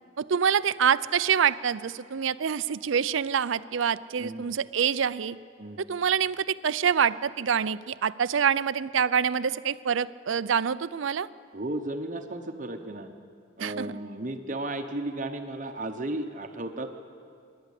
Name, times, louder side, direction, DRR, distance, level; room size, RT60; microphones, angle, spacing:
voice 1, 0.2-5.4 5.9-11.3 13.6-13.9, right 7 dB, 80° right, 16 dB, 0.5 m, -26 dB
voice 2, 11.5-13.1 13.6-16.9, right 1 dB, 40° right, 6 dB, 1.0 m, -34 dB
27.0 x 11.5 x 8.3 m, 2.3 s
head